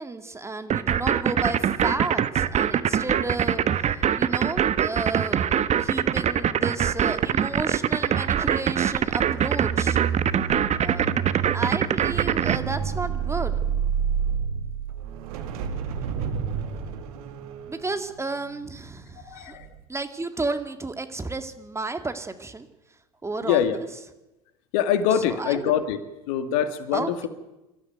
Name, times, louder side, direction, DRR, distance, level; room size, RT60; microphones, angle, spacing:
voice 1, 0.0-10.0 10.8-11.1 11.5-13.6 17.7-19.6 19.9-22.7 23.2-23.9 25.3-25.7 26.9-27.1, right 3 dB, 15° right, 8 dB, 2.2 m, -32 dB
sound 1, 0.7-12.6, right 9 dB, 35° right, 1.3 m, -22 dB
sound 2, 8.9-19.2 19.5-19.8, right 7 dB, 70° right, 2.2 m, -30 dB
voice 2, 19.2-19.7 23.4-23.8 24.7-26.0 26.3-27.3, left 9 dB, 65° left, 10 dB, 2.0 m, -24 dB
25.0 x 13.5 x 9.3 m, 1.0 s
hypercardioid pair, 75°, 19 cm